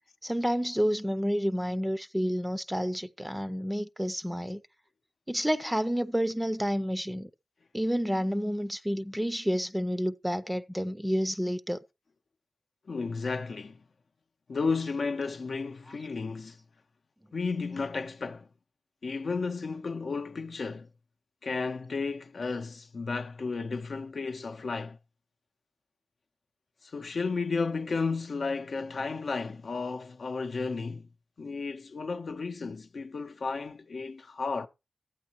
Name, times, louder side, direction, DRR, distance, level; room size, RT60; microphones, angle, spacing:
voice 1, 0.2-4.6 5.3-7.3 7.7-11.8, equal, 5° right, 0.6 m, -29 dB
voice 2, 12.9-13.8 14.5-16.6 17.3-18.5 19.0-20.9 21.4-25.0 26.8-31.1 31.4-34.7, left 4 dB, 65° left, 0.7 m, -33 dB
12.0 x 8.5 x 3.0 m
cardioid pair, 45°, 0 cm